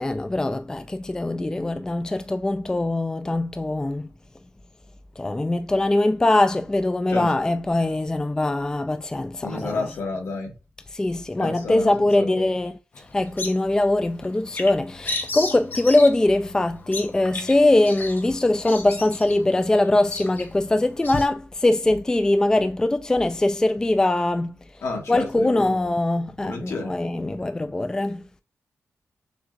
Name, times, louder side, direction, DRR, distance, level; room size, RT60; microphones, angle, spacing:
voice 1, 0.0-4.1 5.2-10.0 10.9-12.8 13.1-24.5 25.1-28.3, left 2 dB, 15° left, 0.3 m, -22 dB
voice 2, 9.4-10.5 11.4-12.5 24.8-25.9 26.4-26.9, left 3 dB, 75° left, 1.5 m, -31 dB
Bird vocalization bird call bird song, 12.9-21.2, left 2 dB, 45° left, 0.9 m, -35 dB
6.5 x 2.6 x 2.5 m
cardioid pair, 95°, 5 cm